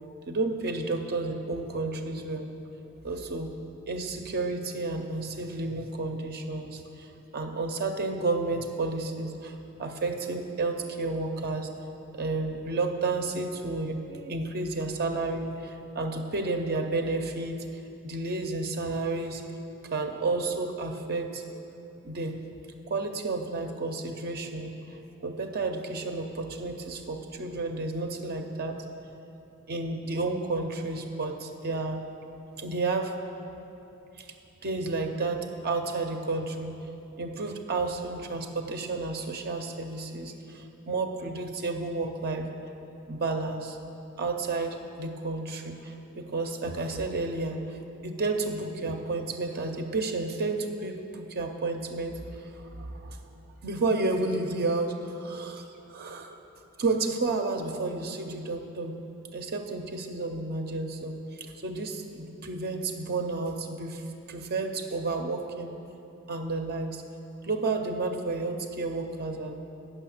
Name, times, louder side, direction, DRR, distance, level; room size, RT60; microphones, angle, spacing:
voice 1, 0.3-2.5 3.0-3.5 3.9-11.7 12.1-17.7 18.0-19.4 19.8-21.4 22.0-22.4 22.9-28.8 29.7-32.0 32.6-33.1 34.2-34.3 34.6-36.8 37.2-42.5 43.1-43.8 44.2-56.4 56.8-59.0 59.3-65.7 66.3-67.0 67.4-69.5, right 3 dB, 45° right, 4 dB, 0.6 m, -31 dB
9.1 x 6.3 x 6.4 m, 2.8 s
head